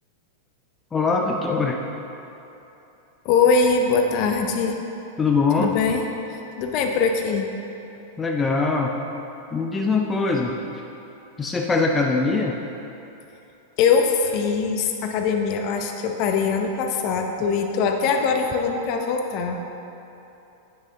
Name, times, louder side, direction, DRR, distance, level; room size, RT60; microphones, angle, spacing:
voice 1, 0.9-1.8 5.2-5.7 8.2-8.9 9.5-10.6 11.4-12.6, left 4 dB, 15° left, 1 dB, 0.6 m, -22 dB
voice 2, 3.2-4.8 5.6-6.0 6.3-7.4 13.8-19.5, left 5 dB, 45° left, 3 dB, 0.8 m, -22 dB
9.1 x 6.2 x 3.9 m, 3.0 s
figure-of-eight pair, 95°, 0 cm